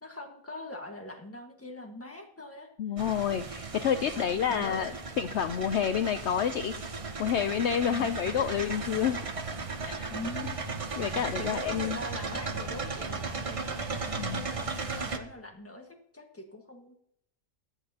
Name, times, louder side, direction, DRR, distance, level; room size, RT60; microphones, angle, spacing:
voice 1, 0.0-2.7 4.1-5.0 7.9-8.1 10.1-10.5 11.4-13.8 14.3-15.9 16.1-17.0, left 1 dB, 10° left, 2 dB, 1.5 m, -42 dB
voice 2, 2.8-6.7 7.2-9.2 9.8-10.1 11.0-12.0 14.2-14.5, left 8 dB, 65° left, 9 dB, 0.8 m, -29 dB
sound 1, 3.0-15.2, right 4 dB, 30° right, 0.7 m, -36 dB
23.0 x 8.5 x 2.8 m, 0.74 s
omnidirectional pair, 1.4 m